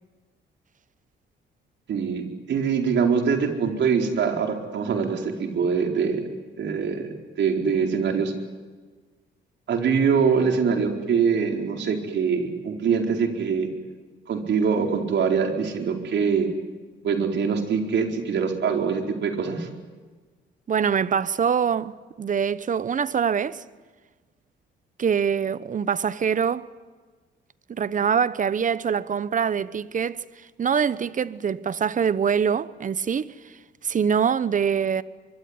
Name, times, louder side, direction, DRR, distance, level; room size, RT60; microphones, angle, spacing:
voice 1, 1.9-6.3 6.6-7.1 7.4-8.3 9.7-13.7 14.3-16.5 17.0-19.7, right 6 dB, 65° right, 4.4 m, -23 dB
voice 2, 20.7-23.6 25.0-26.7 27.7-33.6 33.8-35.0, right 7 dB, 40° right, 1.0 m, -24 dB
24.0 x 23.5 x 9.7 m
cardioid pair, 90°, 20 cm